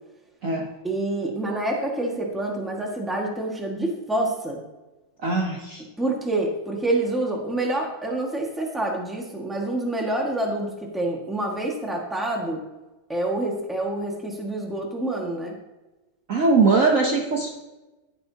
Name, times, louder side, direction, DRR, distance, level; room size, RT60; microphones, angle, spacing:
voice 1, 0.8-4.6 6.0-12.6 13.1-15.5, right 2 dB, ahead, -1 dB, 1.3 m, -27 dB
voice 2, 5.2-5.8 16.3-17.5, right 4 dB, 50° right, 1 dB, 1.1 m, -21 dB
11.5 x 10.0 x 2.8 m, 1.1 s
omnidirectional pair, 2.1 m